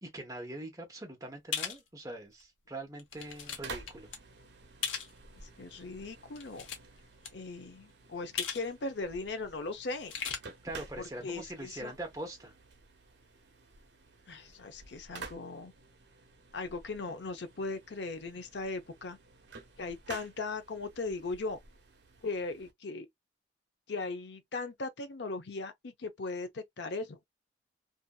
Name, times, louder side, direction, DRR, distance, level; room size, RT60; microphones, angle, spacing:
voice 1, 0.0-4.1 10.6-12.5, right 1 dB, 15° right, 0.8 m, -42 dB
sound 1, 1.5-1.8 2.4-2.5 3.0-3.6 3.9-4.2 4.8-5.1 6.3-7.0 7.2-7.3 8.4-8.7 8.9-9.0 9.9-10.4, left 7 dB, 90° left, 0.8 m, -36 dB
sound 2, 3.1-22.7, right 4 dB, 65° right, 0.8 m, -52 dB
voice 2, 5.6-6.7 7.3-10.1 11.0-11.9 14.3-15.7 16.5-19.2 19.8-21.6 22.2-23.1 23.9-27.2, left 3 dB, 65° left, 0.6 m, -38 dB
2.7 x 2.5 x 2.2 m
head